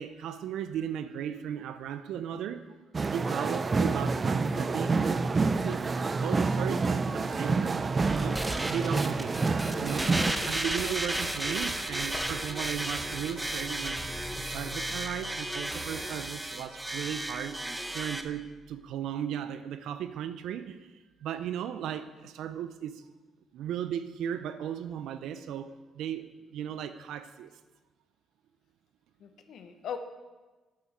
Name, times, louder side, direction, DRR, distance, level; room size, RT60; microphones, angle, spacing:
voice 1, 0.0-2.7 3.1-5.2 5.6-10.1 10.4-14.0 14.4-17.6 17.9-20.9 21.2-23.1 23.5-27.5, right 9 dB, 85° right, 11 dB, 0.6 m, -36 dB
sound 1, 2.9-10.3, right 4 dB, 35° right, 0.5 m, -28 dB
sound 2, 8.0-18.2, right 1 dB, 10° right, 0.9 m, -34 dB
voice 2, 9.6-10.6 10.9-11.3 29.2-30.0, left 8 dB, 70° left, 8 dB, 1.1 m, -42 dB
sound 3, 12.1-18.9, left 3 dB, 40° left, 3.1 m, -47 dB
9.5 x 8.8 x 6.1 m, 1.2 s
cardioid pair, 90°, 0 cm